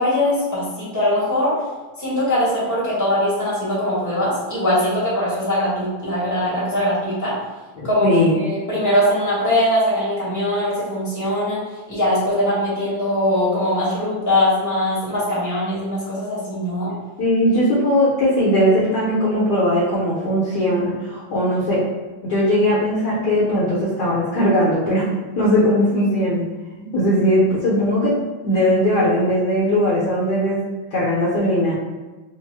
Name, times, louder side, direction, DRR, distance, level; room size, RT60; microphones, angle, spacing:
voice 1, 0.0-1.5 2.0-7.3 7.8-11.6 11.9-16.9, left 1 dB, 15° left, -9 dB, 0.7 m, -21 dB
voice 2, 7.8-8.4 17.2-21.8 22.2-25.1 25.4-26.4 26.8-30.6 30.9-31.8, equal, 65° left, -8 dB, 1.1 m, -19 dB
3.5 x 2.1 x 3.2 m, 1.2 s
omnidirectional pair, 2.3 m